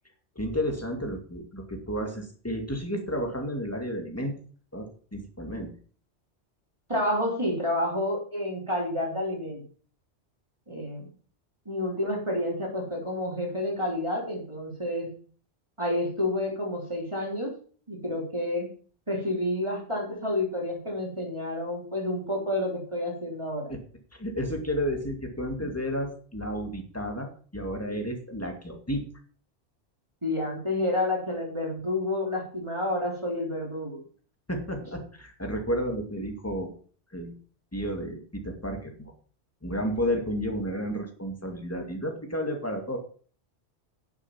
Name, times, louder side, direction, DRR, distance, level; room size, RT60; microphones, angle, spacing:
voice 1, 0.4-4.4 4.7-5.7 23.7-23.8 24.2-29.1 34.5-36.7 37.1-37.3 37.7-39.1 39.6-43.0, equal, 15° left, 3 dB, 2.4 m, -32 dB
voice 2, 6.9-9.6 10.7-11.0 11.7-15.1 15.8-17.5 17.9-18.7 19.1-23.7 25.6-25.7 30.2-34.0, left 1 dB, 25° right, -2 dB, 3.6 m, -29 dB
11.5 x 7.2 x 5.8 m, 0.43 s
omnidirectional pair, 1.1 m